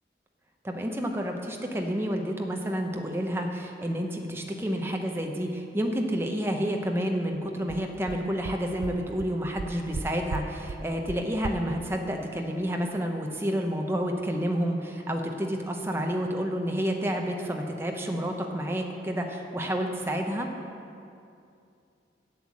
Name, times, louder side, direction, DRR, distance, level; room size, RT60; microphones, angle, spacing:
voice 1, 0.6-20.5, equal, 15° right, 2 dB, 0.8 m, -29 dB
sound 1, 7.3-7.4 7.7-7.8 8.1-8.2 8.4-8.5 8.8-8.9 9.2-9.3 9.6-10.0 10.3-10.4 10.7-10.8 11.1-11.2 11.4-11.5, right 4 dB, 80° right, 0.4 m, -34 dB
8.1 x 7.8 x 7.3 m, 2.5 s
head